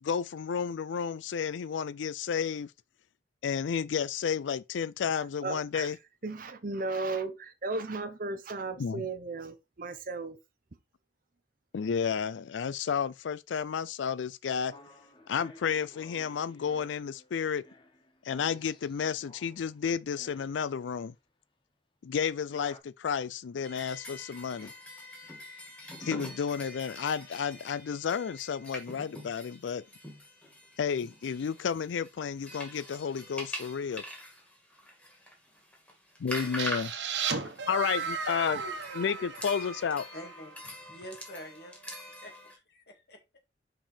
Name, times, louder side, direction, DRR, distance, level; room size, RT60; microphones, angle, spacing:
voice 1, 0.0-2.7 3.4-6.0 8.8-9.1 11.7-14.7 15.3-17.6 18.2-21.1 22.0-24.7 26.0-29.8 30.8-34.0 36.2-36.9 37.7-38.6 38.9-40.1, left 7 dB, 85° left, 0.4 m, -32 dB
voice 2, 5.4-5.9 6.2-10.4, right 3 dB, 50° right, 0.7 m, -35 dB
sound 1, 14.7-21.0 22.5-22.8, left 1 dB, 25° left, 1.1 m, -54 dB
sound 2, 23.6-42.6, left 1 dB, 5° left, 2.0 m, -44 dB
Love Arrow, 36.6-40.3, right 6 dB, 70° right, 1.2 m, -35 dB
voice 3, 40.1-40.5 40.9-41.8 42.2-43.4, equal, 60° left, 2.2 m, -47 dB
5.4 x 5.0 x 4.3 m
head